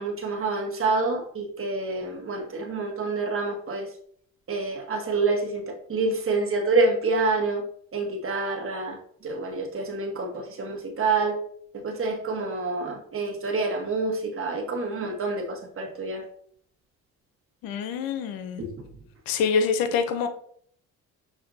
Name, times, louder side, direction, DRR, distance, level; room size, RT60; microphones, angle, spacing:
voice 1, 0.0-3.9 4.5-7.6 7.9-11.4 11.7-16.3 18.6-18.7, right 3 dB, 40° right, 2 dB, 1.2 m, -27 dB
voice 2, 17.6-18.6 19.3-20.3, left 6 dB, 75° left, 9 dB, 0.7 m, -25 dB
6.0 x 2.6 x 2.7 m, 0.62 s
supercardioid pair, 65°, 35 cm